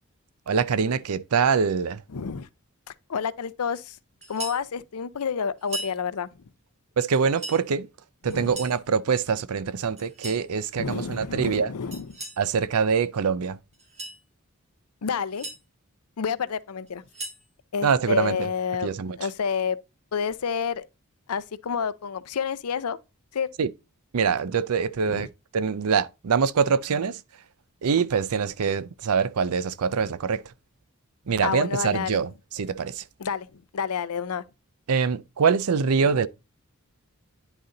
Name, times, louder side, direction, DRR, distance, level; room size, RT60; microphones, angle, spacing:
voice 1, 0.5-2.0 7.0-7.9 8.2-11.7 12.4-13.6 17.8-18.5 18.8-19.2 23.6-23.7 24.1-25.3 25.5-27.2 27.8-30.4 31.3-33.0 34.9-36.3, right 6 dB, 80° right, 0.5 m, -24 dB
voice 2, 2.1-2.5 3.1-4.0 4.3-6.3 8.3-8.5 10.8-12.2 15.0-15.5 16.2-17.0 17.7-19.8 20.1-20.8 21.3-23.0 23.3-23.5 25.1-25.3 31.4-32.2 33.2-34.4, left 6 dB, 90° left, 0.6 m, -29 dB
sound 1, 4.2-4.6 5.6-6.0 7.1-7.6 8.3-8.8 10.0-10.4 11.9-12.4 13.7-14.2 15.1-15.6 16.9-17.4, right 2 dB, 30° right, 2.8 m, -38 dB
9.9 x 4.0 x 3.8 m
head